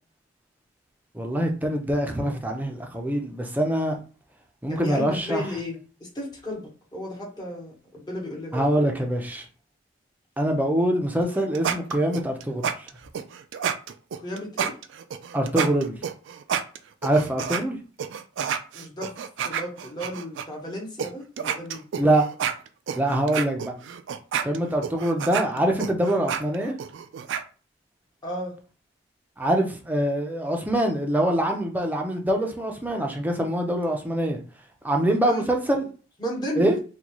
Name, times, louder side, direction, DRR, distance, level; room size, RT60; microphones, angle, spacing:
voice 1, 1.1-4.0 4.6-5.4 8.5-9.5 10.4-12.9 15.3-15.9 17.0-17.8 22.0-22.2 23.0-23.7 24.4-26.8 29.4-34.4 34.8-35.9 36.6-36.8, right 1 dB, 10° right, 0.6 m, -24 dB
voice 2, 4.7-6.6 6.9-8.7 14.2-14.7 18.7-19.1 19.4-21.8 28.2-28.6 35.2-35.5 36.2-36.8, equal, 20° left, 1.2 m, -33 dB
sound 1, 11.2-17.6 18.0-20.4 21.0-21.1 21.4-27.4, right 7 dB, 65° right, 0.3 m, -29 dB
3.9 x 2.3 x 3.0 m
head